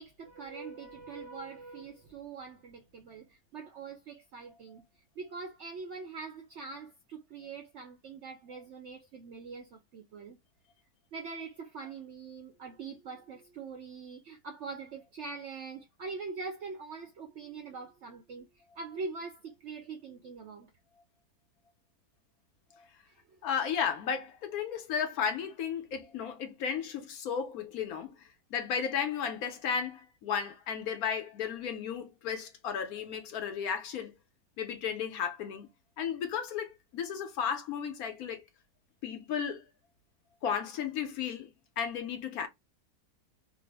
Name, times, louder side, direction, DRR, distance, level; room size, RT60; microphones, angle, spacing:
voice 1, 0.0-4.8 5.2-10.4 11.1-18.5 18.8-20.7 23.1-23.2, right 4 dB, 65° right, 0.7 m, -43 dB
voice 2, 23.4-34.1 34.6-35.7 36.0-38.4 39.0-39.7 40.4-41.5 41.8-42.5, left 7 dB, 70° left, 1.1 m, -34 dB
3.3 x 2.0 x 3.3 m
omnidirectional pair, 1.7 m